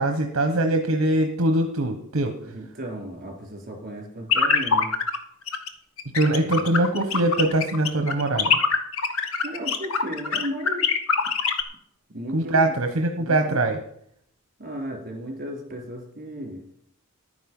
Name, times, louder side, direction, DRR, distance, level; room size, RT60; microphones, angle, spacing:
voice 1, 0.0-2.4 6.1-8.6 12.3-13.8, right 1 dB, 65° right, 5 dB, 1.1 m, -22 dB
voice 2, 2.4-4.9 6.4-6.6 9.4-10.9 12.1-12.8 13.1-13.6 14.6-16.6, equal, 45° right, 1 dB, 3.7 m, -35 dB
sound 1, 4.3-5.2 5.5-5.7 6.0-11.6, left 5 dB, 70° left, 1.2 m, -23 dB
11.0 x 9.5 x 5.4 m, 0.70 s
head